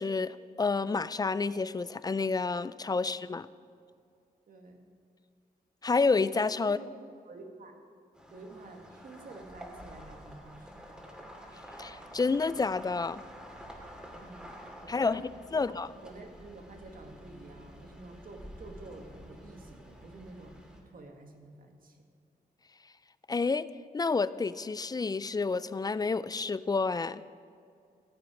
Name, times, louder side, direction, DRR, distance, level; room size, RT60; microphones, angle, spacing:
voice 1, 0.0-3.5 5.8-6.8 11.8-13.2 14.9-15.2 15.5-15.9 23.3-23.7 23.9-27.2, left 4 dB, 25° left, 16 dB, 0.3 m, -29 dB
voice 2, 4.5-4.8 6.6-6.9 7.2-7.7 8.3-11.0 14.2-15.3 15.5-15.7 16.0-22.0, right 2 dB, 60° right, 3 dB, 1.6 m, -49 dB
sound 1, 8.1-20.8, equal, 5° right, 2.4 m, -49 dB
16.0 x 8.4 x 5.0 m, 2.4 s
cardioid pair, 85°, 16 cm